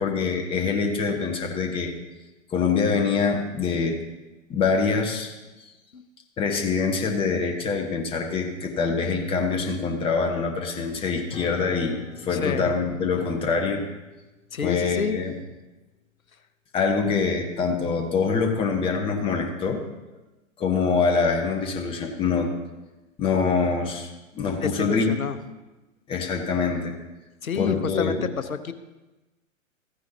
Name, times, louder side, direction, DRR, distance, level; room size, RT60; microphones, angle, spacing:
voice 1, 0.0-1.9 2.5-4.0 4.5-5.3 6.4-13.9 14.6-15.3 16.7-19.8 20.6-22.5 23.2-25.1 26.1-26.9 27.5-28.2, left 5 dB, 15° left, 3 dB, 0.9 m, -25 dB
Acoustic guitar / Strum, 11.3-16.1, left 6 dB, 30° left, 3.0 m, -47 dB
voice 2, 12.3-12.7 14.5-15.2 24.6-25.4 27.4-28.7, left 6 dB, 85° left, 11 dB, 0.7 m, -29 dB
14.5 x 9.5 x 2.8 m, 1.1 s
figure-of-eight pair, 115°, 40 cm